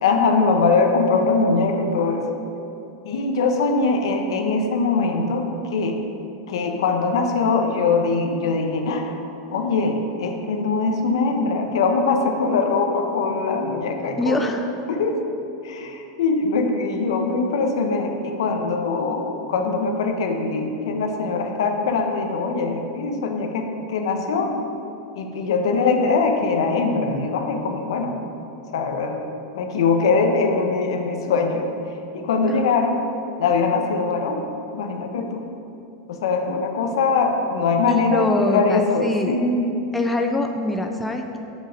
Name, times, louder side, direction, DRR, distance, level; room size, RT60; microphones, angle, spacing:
voice 1, 0.0-2.2 3.0-6.0 6.5-9.1 9.5-14.4 14.9-15.3 15.6-24.6 25.1-28.1 28.7-29.2 29.5-31.7 32.1-33.1 33.4-34.4 34.7-35.4 36.1-39.8, left 4 dB, 85° left, 4 dB, 0.9 m, -22 dB
voice 2, 14.2-14.7 32.5-32.7 37.9-39.4 39.9-41.4, left 1 dB, 5° left, 3 dB, 0.3 m, -24 dB
7.5 x 5.6 x 5.0 m, 2.8 s
supercardioid pair, 175°, 3 cm